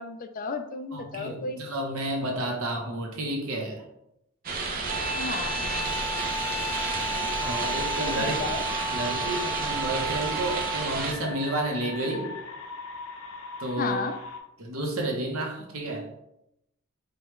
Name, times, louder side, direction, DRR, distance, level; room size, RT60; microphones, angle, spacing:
voice 1, 0.0-1.6 5.1-5.7 8.1-8.6 13.8-14.2, left 4 dB, 40° left, 8 dB, 0.3 m, -33 dB
voice 2, 0.9-3.8 7.4-8.6 8.9-12.3 13.6-14.0 14.6-16.1, right 1 dB, 75° right, 1 dB, 0.9 m, -31 dB
sound 1, 4.4-11.1, right 3 dB, 45° right, 0.6 m, -31 dB
sound 2, 4.8-11.1, right 1 dB, 25° right, 1.0 m, -33 dB
sound 3, 7.1-14.4, left 4 dB, 75° left, 0.6 m, -41 dB
4.9 x 2.3 x 3.1 m, 0.81 s
head